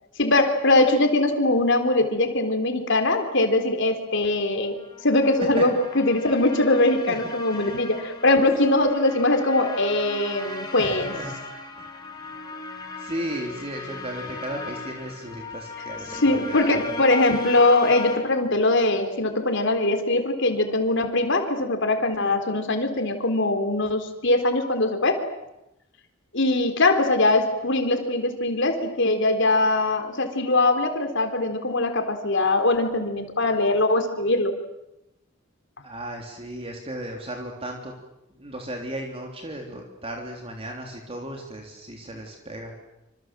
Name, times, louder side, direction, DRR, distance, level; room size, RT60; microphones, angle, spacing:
voice 1, 0.2-11.1 16.1-25.2 26.3-34.5, left 2 dB, 65° left, 6 dB, 4.1 m, -22 dB
sound 1, 4.8-18.2, left 3 dB, 20° left, 5.8 m, -37 dB
voice 2, 7.5-7.9 10.8-11.3 11.8-11.9 12.2-12.3 13.0-16.8 35.8-37.9 38.4-42.7, right 1 dB, 30° right, 2 dB, 3.5 m, -35 dB
27.5 x 27.0 x 7.8 m, 0.88 s
head